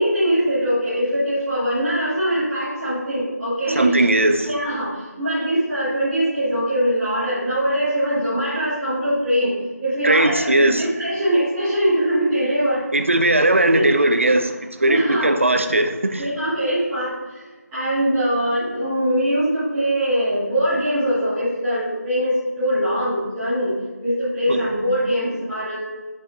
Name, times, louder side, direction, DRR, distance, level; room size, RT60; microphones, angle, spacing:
voice 1, 0.0-4.0 4.4-9.5 9.8-12.8 13.7-13.8 14.9-15.3 16.2-17.4 17.7-23.7 24.0-25.8, equal, 5° right, -18 dB, 1.8 m, -22 dB
voice 2, 3.7-4.5 10.0-10.8 12.9-16.3 24.5-24.6, right 1 dB, 50° right, 7 dB, 0.6 m, -18 dB
8.0 x 5.6 x 2.7 m, 1.3 s
figure-of-eight pair, 175°, 9 cm